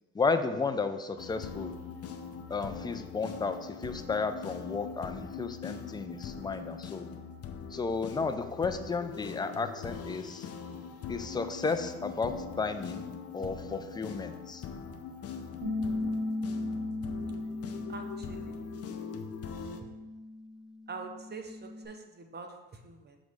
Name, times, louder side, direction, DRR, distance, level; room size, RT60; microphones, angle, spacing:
voice 1, 0.1-1.7 2.5-7.1 7.7-10.5 11.1-13.0 13.3-14.7, left 4 dB, 15° left, 9 dB, 0.4 m, -33 dB
sound 1, 1.2-19.8, left 6 dB, 55° left, 0.6 m, -42 dB
Bass guitar, 15.6-21.9, left 2 dB, 50° right, 1.2 m, -37 dB
voice 2, 17.9-18.6 19.8-19.9 20.9-23.2, right 4 dB, 35° right, 4 dB, 0.7 m, -45 dB
6.0 x 3.1 x 5.3 m, 1.1 s
cardioid pair, 90°, 30 cm